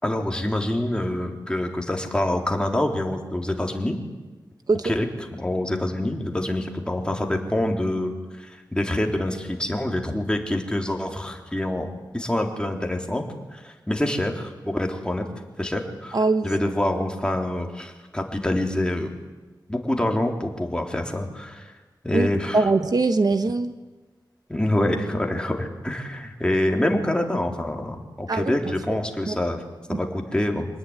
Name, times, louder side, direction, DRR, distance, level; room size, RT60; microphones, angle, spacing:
voice 1, 0.0-4.0 4.8-13.2 13.5-15.3 15.6-19.1 19.7-21.7 22.0-22.7 24.5-29.6 29.9-30.7, left 1 dB, 10° left, 2 dB, 3.7 m, -26 dB
voice 2, 16.1-16.5 22.1-22.3 22.5-23.7 28.3-28.5 29.3-29.4 29.9-30.0, right 3 dB, 55° right, 8 dB, 1.4 m, -21 dB
26.0 x 19.5 x 9.9 m, 1.3 s
wide cardioid pair, 75°, 8 cm